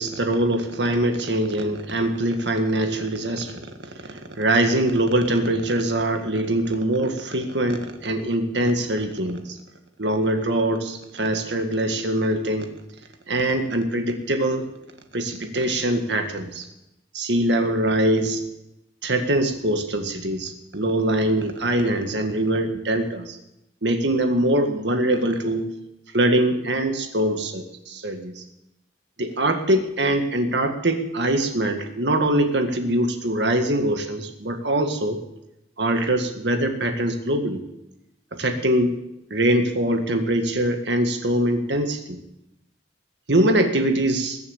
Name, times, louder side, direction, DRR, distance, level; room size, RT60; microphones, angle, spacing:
voice 1, 0.0-3.7 4.1-9.6 10.0-12.7 13.3-14.7 15.1-16.7 17.1-18.4 19.0-23.4 23.8-25.6 26.1-28.4 29.2-35.2 35.8-37.6 38.3-38.9 39.3-42.2 43.3-44.4, right 1 dB, 70° right, 6 dB, 1.8 m, -23 dB
21.0 x 7.1 x 7.3 m, 0.87 s
head